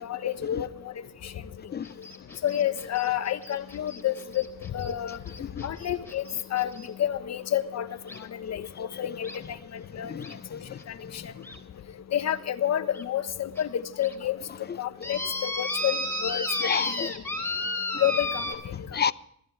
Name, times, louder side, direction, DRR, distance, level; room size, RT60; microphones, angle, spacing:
voice 1, 0.0-0.7 2.4-4.4 4.7-5.2 5.6-6.2 6.5-6.7 7.0-7.9 8.5-9.4 10.0-10.1 12.1-14.4 14.8-16.4 18.0-18.3, left 11 dB, 60° left, 1.3 m, -28 dB
sound 1, 1.8-6.9 8.1-8.2 9.2-9.4 10.2-10.3 10.8-10.9 11.4-11.6 12.3-12.4 12.9-13.0 13.6-13.7 14.0-14.1 15.0-18.5, left 2 dB, 10° left, 3.8 m, -33 dB
voice 2, 10.0-10.8 14.7-14.8 16.6-17.1 18.9-19.1, left 7 dB, 35° left, 0.8 m, -30 dB
22.5 x 14.5 x 3.4 m
cardioid pair, 90°, 30 cm